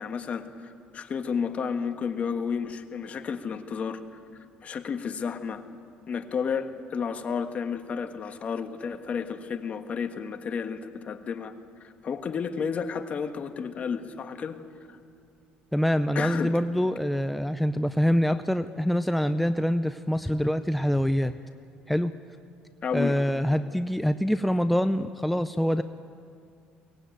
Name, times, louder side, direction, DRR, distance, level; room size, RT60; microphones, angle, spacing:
voice 1, 0.0-4.0 4.6-5.6 6.1-11.5 11.8-14.6 16.1-16.6 22.8-23.2, left 6 dB, 40° left, 7 dB, 1.5 m, -32 dB
voice 2, 15.7-21.4 21.9-22.1 22.9-25.8, equal, ahead, 10 dB, 0.5 m, -25 dB
23.0 x 18.5 x 9.1 m, 2.3 s
cardioid pair, 120°, 4 cm